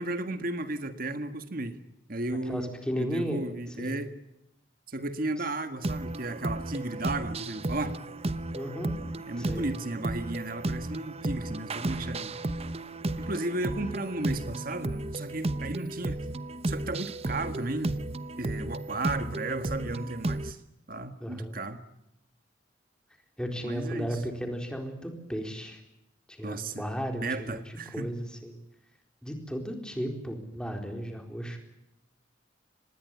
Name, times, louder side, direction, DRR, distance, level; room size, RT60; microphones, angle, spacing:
voice 1, 0.0-1.8 2.1-4.1 4.9-8.0 9.3-12.3 13.2-16.2 16.7-18.0 18.4-20.6 20.9-21.8 23.6-24.1 26.4-26.8 27.2-28.1, right 2 dB, 50° right, 9 dB, 1.6 m, -34 dB
voice 2, 2.4-3.4 3.8-4.0 5.4-5.5 8.5-8.9 9.4-9.7 21.2-21.5 23.4-25.8 26.3-28.6 29.2-31.6, equal, 5° left, 3 dB, 4.2 m, -35 dB
sound 1, 5.8-20.5, right 2 dB, 35° right, 0.9 m, -34 dB
25.5 x 20.5 x 8.4 m, 0.87 s
head